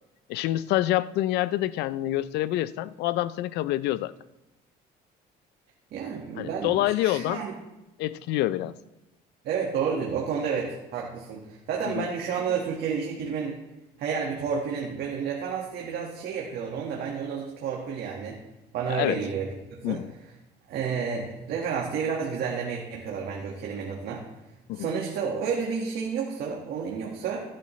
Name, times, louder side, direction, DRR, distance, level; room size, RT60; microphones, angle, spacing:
voice 1, 0.3-4.1 6.4-7.4 8.0-8.7 11.9-12.1 18.9-19.2 19.8-20.1 24.7-24.9, left 15 dB, 85° left, 17 dB, 0.4 m, -27 dB
voice 2, 5.9-7.5 9.4-13.6 14.0-18.4 18.7-19.5 19.8-20.0 20.7-24.2 24.7-27.6, right 6 dB, 70° right, -1 dB, 1.6 m, -30 dB
15.0 x 9.8 x 3.2 m, 1.0 s
cardioid pair, 110°, 17 cm